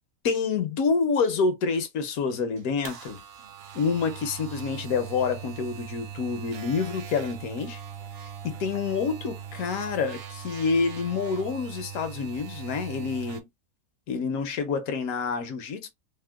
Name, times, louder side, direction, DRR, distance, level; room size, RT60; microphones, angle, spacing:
voice 1, 0.2-3.2 3.7-7.8 8.4-13.5 14.1-15.9, left 5 dB, 75° left, 1.1 m, -27 dB
sound 1, 2.6-13.4, right 8 dB, 65° right, 0.6 m, -40 dB
3.5 x 2.1 x 2.2 m
omnidirectional pair, 1.6 m